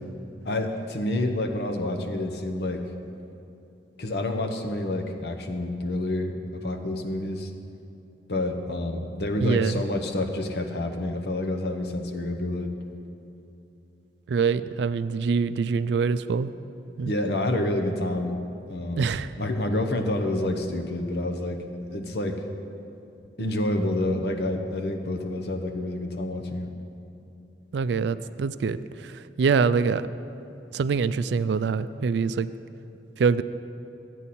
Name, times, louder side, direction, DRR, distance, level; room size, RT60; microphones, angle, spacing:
voice 1, 0.5-2.8 4.0-7.5 8.3-12.7 17.0-18.4 18.7-19.1 19.4-22.4 23.4-26.7, left 1 dB, 65° left, 4 dB, 0.9 m, -28 dB
voice 2, 9.4-9.8 14.3-16.5 17.0-17.1 19.0-19.3 27.7-30.1 30.7-32.5 33.2-33.4, right 5 dB, 75° right, 14 dB, 0.3 m, -25 dB
13.5 x 9.1 x 4.2 m, 2.8 s
head